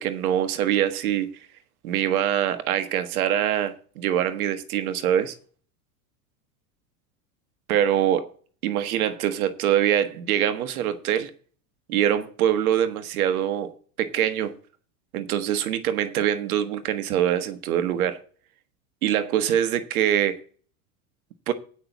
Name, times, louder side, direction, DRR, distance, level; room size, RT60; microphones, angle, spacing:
voice 1, 0.0-1.3 1.8-5.3 7.7-8.3 8.6-11.3 11.9-13.7 14.0-14.5 15.1-18.2 19.0-20.4 21.5-21.6, right 10 dB, 80° right, 1.5 m, -24 dB
9.0 x 6.0 x 8.0 m
hypercardioid pair, 95°, 43 cm